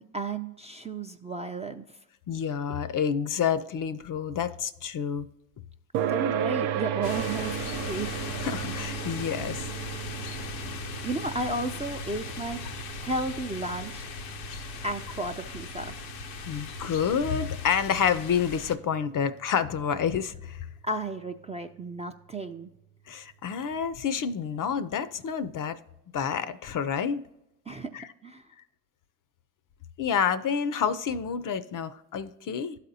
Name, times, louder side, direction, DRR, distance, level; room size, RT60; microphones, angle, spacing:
voice 1, 0.0-2.0 6.1-8.1 11.0-12.6 13.0-14.1 14.8-15.9 20.8-22.7 27.7-28.4, right 2 dB, 15° right, 0.4 m, -33 dB
voice 2, 2.3-5.3 8.4-9.7 16.5-20.7 23.1-25.8 26.1-27.2 27.9-28.1 30.0-32.8, left 7 dB, 40° left, 0.5 m, -28 dB
sound 1, 5.9-20.9, right 9 dB, 75° right, 0.6 m, -36 dB
sound 2, 7.0-18.8, left 5 dB, 85° left, 0.8 m, -39 dB
12.5 x 4.2 x 2.7 m
hypercardioid pair, 55°, 50 cm